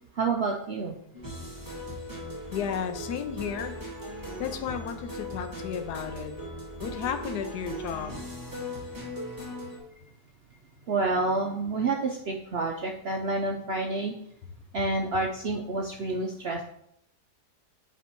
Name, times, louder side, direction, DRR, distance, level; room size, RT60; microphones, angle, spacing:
voice 1, 0.2-1.0 10.9-14.1 14.7-16.6, right 3 dB, 65° right, 1 dB, 0.6 m, -28 dB
sound 1, 1.1-9.8, equal, 10° right, 1.7 m, -38 dB
voice 2, 2.5-3.7 4.4-6.3 6.8-8.1, left 8 dB, 80° left, 8 dB, 1.3 m, -33 dB
8.1 x 3.5 x 4.5 m, 0.74 s
omnidirectional pair, 1.7 m